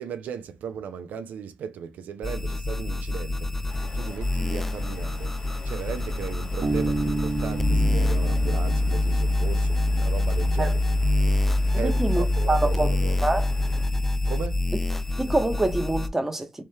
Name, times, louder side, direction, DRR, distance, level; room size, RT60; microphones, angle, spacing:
voice 1, 0.0-5.3 5.6-10.8 11.7-13.2 14.3-14.7, right 7 dB, 85° right, 0.4 m, -36 dB
sound 1, 2.2-16.1, left 2 dB, 10° left, 0.4 m, -25 dB
sound 2, 3.7-13.9, left 3 dB, 80° left, 1.4 m, -46 dB
Bass guitar, 6.6-10.2, right 3 dB, 50° right, 1.0 m, -30 dB
voice 2, 11.7-12.9 13.2-13.5 15.2-16.6, right 2 dB, 10° right, 0.8 m, -25 dB
3.2 x 3.1 x 3.2 m
cardioid pair, 95°, 3 cm